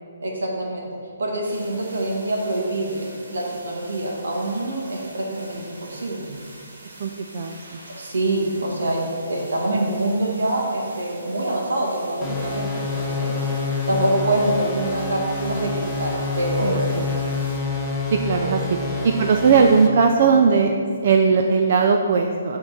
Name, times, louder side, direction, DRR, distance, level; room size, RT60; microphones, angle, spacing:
voice 1, 0.2-6.3 7.9-13.4 13.9-16.9 18.4-19.1, right 1 dB, 75° right, -1 dB, 1.7 m, -25 dB
sound 1, 1.4-17.6, right 1 dB, 60° right, 1.5 m, -44 dB
voice 2, 7.0-7.8 16.6-17.1 18.1-18.8 19.0-20.7 21.0-22.6, right 5 dB, 35° right, 4 dB, 0.3 m, -19 dB
sound 2, 12.2-19.9, left 3 dB, 5° left, 0.6 m, -27 dB
7.7 x 3.7 x 5.9 m, 2.2 s
hypercardioid pair, 175°, 0 cm